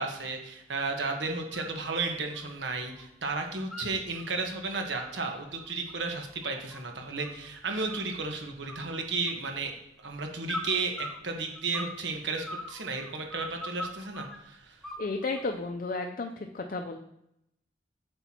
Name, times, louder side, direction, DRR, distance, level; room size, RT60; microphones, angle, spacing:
voice 1, 0.0-9.7 10.0-14.8, right 3 dB, 80° right, 3 dB, 1.3 m, -33 dB
sound 1, 1.4-1.8 2.1-3.1 3.3-4.3 4.7-7.5 7.9-8.4 8.7-9.6 10.5-12.0 12.3-14.4 14.8-15.6, left 1 dB, ahead, 0.8 m, -41 dB
voice 2, 15.0-17.0, left 3 dB, 50° left, 4 dB, 0.5 m, -33 dB
8.2 x 7.9 x 2.9 m, 0.81 s
head